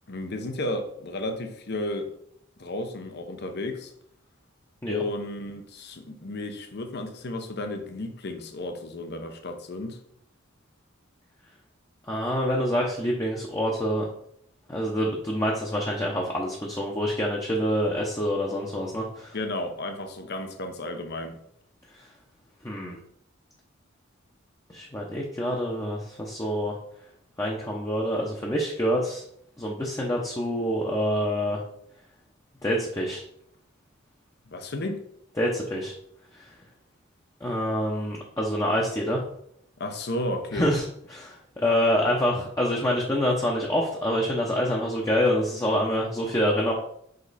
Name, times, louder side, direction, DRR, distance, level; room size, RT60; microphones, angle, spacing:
voice 1, 0.1-2.1 2.6-3.9 4.9-10.0 19.3-21.4 34.5-35.0 39.8-40.7, left 1 dB, 55° left, 0.8 m, -33 dB
voice 2, 12.1-14.1 14.7-19.4 22.0-22.1 22.6-23.0 24.7-26.8 27.4-29.2 29.6-31.6 32.6-33.2 35.4-35.9 36.3-36.5 37.4-39.2 40.5-40.9 41.1-46.7, equal, 15° left, 0.8 m, -26 dB
5.5 x 5.2 x 4.1 m
head